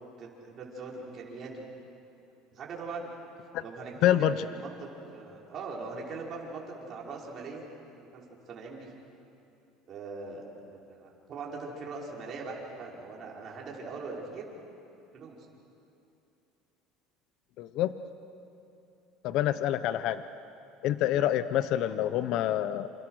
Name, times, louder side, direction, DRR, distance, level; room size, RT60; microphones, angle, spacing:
voice 1, 0.2-1.7 2.5-3.1 3.6-7.7 8.1-8.2 8.5-8.9 9.9-14.5 15.1-15.4 21.1-21.3, right 4 dB, 35° right, -2 dB, 5.3 m, -41 dB
voice 2, 4.0-4.3 17.6-17.9 19.2-20.2 20.8-22.9, left 12 dB, 55° left, 12 dB, 0.8 m, -26 dB
28.5 x 28.0 x 6.5 m, 2.8 s
cardioid pair, 140°, 0 cm